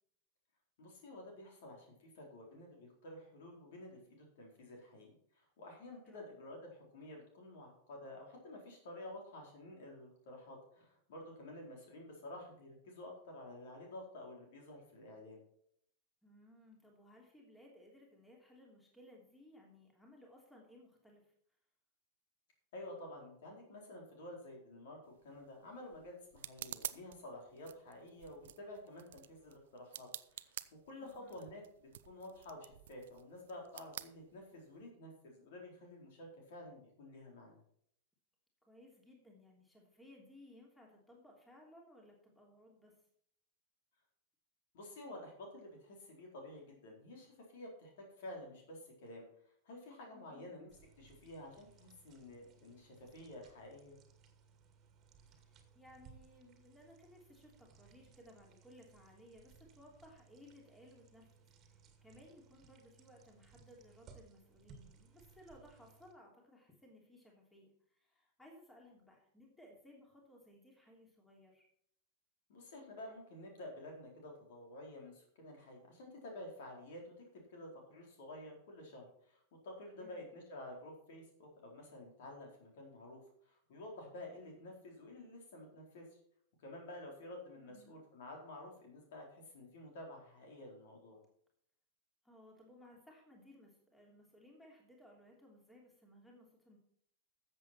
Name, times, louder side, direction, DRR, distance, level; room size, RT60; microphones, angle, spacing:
voice 1, 0.8-15.4 22.7-30.6 30.8-37.6 44.7-47.9 48.2-49.3 49.6-50.7 51.0-54.0 72.5-86.1 86.6-91.2, left 1 dB, 55° left, 1 dB, 4.1 m, -51 dB
voice 2, 16.2-21.3 31.0-31.4 38.7-42.9 50.1-50.5 55.3-61.3 61.6-71.7 80.0-80.2 87.6-88.0 92.2-96.8, left 1 dB, 5° left, 0 dB, 3.1 m, -60 dB
sound 1, 25.0-34.9, right 12 dB, 60° right, 0.5 m, -51 dB
sound 2, 50.7-66.1, right 5 dB, 30° right, 2.1 m, -63 dB
13.5 x 7.8 x 4.4 m, 0.66 s
figure-of-eight pair, 90°, 0 cm